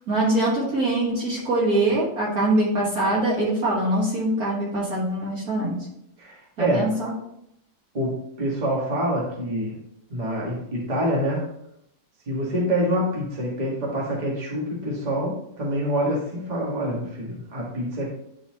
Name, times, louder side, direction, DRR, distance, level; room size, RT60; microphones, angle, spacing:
voice 1, 0.1-5.9 6.6-7.1, right 1 dB, 45° right, -5 dB, 1.8 m, -23 dB
voice 2, 6.2-6.9 7.9-9.8 10.1-11.4 12.3-18.1, equal, 25° right, -3 dB, 1.4 m, -26 dB
9.8 x 4.2 x 2.9 m, 0.77 s
omnidirectional pair, 2.3 m